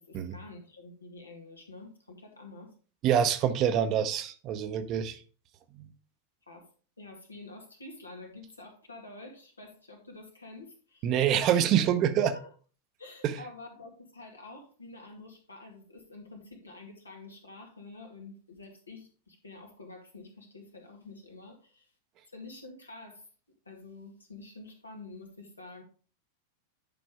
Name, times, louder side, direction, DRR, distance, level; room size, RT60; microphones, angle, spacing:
voice 1, 0.1-2.7 6.5-6.7 7.0-11.1 12.2-12.5 13.0-21.9 22.3-23.3 23.7-25.8, left 2 dB, 80° left, 2.1 m, -48 dB
voice 2, 3.0-5.2 5.7-5.9 11.0-12.3 13.2-13.4, right 9 dB, 35° right, 0.8 m, -26 dB
10.0 x 5.2 x 3.6 m
figure-of-eight pair, 90°, 0 cm